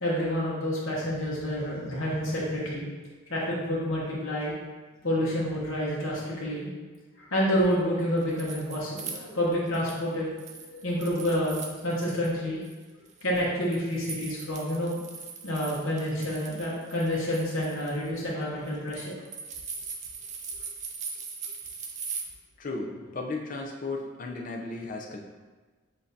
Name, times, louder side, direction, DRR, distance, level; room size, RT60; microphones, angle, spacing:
voice 1, 0.0-2.9 3.3-4.5 5.0-6.7 7.2-10.3 10.7-12.6 13.2-15.0 15.4-19.2, equal, 70° left, -5 dB, 0.9 m, -28 dB
sound 1, 8.0-10.1 10.4-12.3 12.6-22.2, right 5 dB, 35° right, 0.4 m, -40 dB
voice 2, 22.6-25.2, left 3 dB, 40° left, 1 dB, 0.5 m, -35 dB
7.0 x 2.6 x 2.7 m, 1.3 s
head